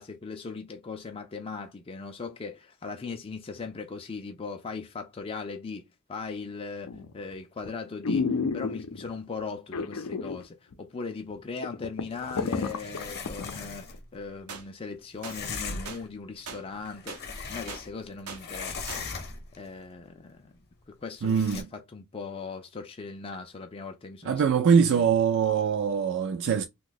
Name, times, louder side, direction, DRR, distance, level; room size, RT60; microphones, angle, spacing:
voice 1, 0.0-13.8 14.1-17.2 17.5-18.9 19.6-20.5 20.9-24.4, left 4 dB, 25° left, 0.4 m, -39 dB
sound 1, 6.9-7.2 7.7-7.8 8.0-9.1 9.7-10.4 10.7-10.8 11.3-11.4 11.6-13.5 13.9-14.0, left 4 dB, 85° left, 0.5 m, -30 dB
sound 2, 12.1-14.0 15.2-16.1 16.7-18.1 18.3-19.6 21.3-21.6, left 4 dB, 50° left, 0.8 m, -39 dB
sound 3, 14.5-14.6 15.2-15.4 15.9-16.0 16.5-16.6 17.1-17.2 17.7-17.8 18.3-18.4 18.9-19.0, right 5 dB, 85° right, 0.7 m, -40 dB
voice 2, 21.2-21.7 24.3-26.6, right 6 dB, 55° right, 0.4 m, -23 dB
2.7 x 2.2 x 3.9 m
head